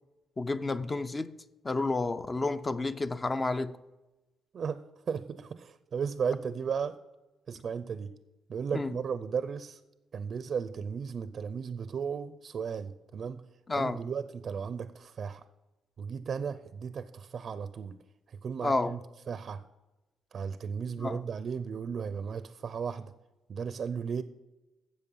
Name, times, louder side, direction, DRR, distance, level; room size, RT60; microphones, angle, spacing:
voice 1, 0.4-1.4 1.6-3.7 8.7-8.9 13.7-14.0 18.6-18.9 21.0-21.2, left 3 dB, 25° left, 0.6 m, -30 dB
voice 2, 5.1-7.0 7.5-8.1 8.5-9.8 10.1-13.4 13.7-15.4 16.0-18.0 18.4-19.6 20.3-23.1 23.5-24.2, right 6 dB, 55° right, 0.6 m, -35 dB
12.5 x 7.8 x 5.5 m
cardioid pair, 90°, 0 cm